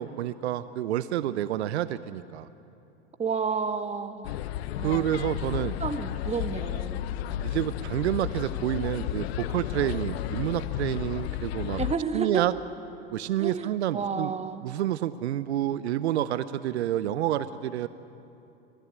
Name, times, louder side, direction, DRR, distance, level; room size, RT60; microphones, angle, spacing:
voice 1, 0.0-2.5 4.8-5.8 7.4-11.8 12.1-12.5 13.1-14.3 14.6-17.9, right 12 dB, 70° right, 15 dB, 0.8 m, -29 dB
voice 2, 3.2-4.4 4.8-5.1 5.8-7.0 11.8-12.5 13.4-14.7, right 5 dB, 20° right, 9 dB, 1.4 m, -31 dB
sound 1, 4.2-11.9, left 12 dB, 65° left, 0.8 m, -33 dB
22.5 x 15.5 x 9.3 m, 2.8 s
hypercardioid pair, 85°, 34 cm